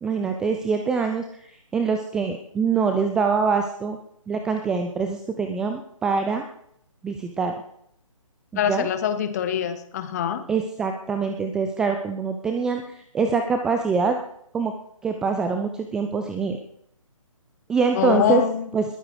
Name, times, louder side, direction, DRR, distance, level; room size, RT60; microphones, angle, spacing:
voice 1, 0.0-4.0 4.3-6.4 7.0-7.5 8.7-8.9 10.5-14.2 14.5-14.7 15.0-16.6 17.7-18.4 18.7-18.8, right 5 dB, 5° right, 5 dB, 0.5 m, -24 dB
voice 2, 8.5-10.4 17.9-18.7, left 9 dB, 30° left, 9 dB, 1.7 m, -24 dB
20.5 x 9.6 x 5.0 m, 0.69 s
figure-of-eight pair, 140°, 18 cm